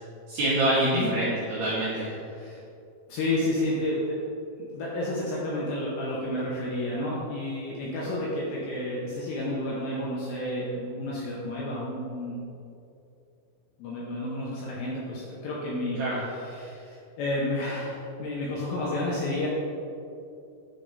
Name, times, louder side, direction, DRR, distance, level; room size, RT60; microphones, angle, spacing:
voice 1, 0.3-2.1 16.0-16.2, right 1 dB, 80° right, -7 dB, 2.3 m, -25 dB
voice 2, 3.1-4.2 4.6-12.5 13.8-16.0 16.4-19.5, left 1 dB, 80° left, -6 dB, 2.5 m, -31 dB
9.4 x 3.3 x 4.0 m, 2.6 s
omnidirectional pair, 5.8 m